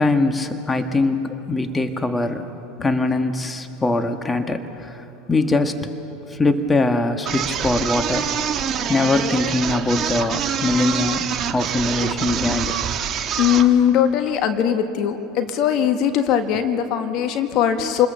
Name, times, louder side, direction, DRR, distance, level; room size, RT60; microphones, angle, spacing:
voice 1, 0.0-2.5 2.8-5.8 6.3-8.3 8.9-11.2 11.5-12.8 17.2-17.3 17.8-17.9, left 2 dB, 15° left, 7 dB, 1.6 m, -22 dB
sound 1, 7.3-13.7, right 8 dB, 40° right, 1.4 m, -25 dB
voice 2, 13.4-18.1, left 9 dB, 55° left, 7 dB, 1.6 m, -20 dB
28.0 x 21.0 x 6.8 m, 3.0 s
hypercardioid pair, 85°, 0 cm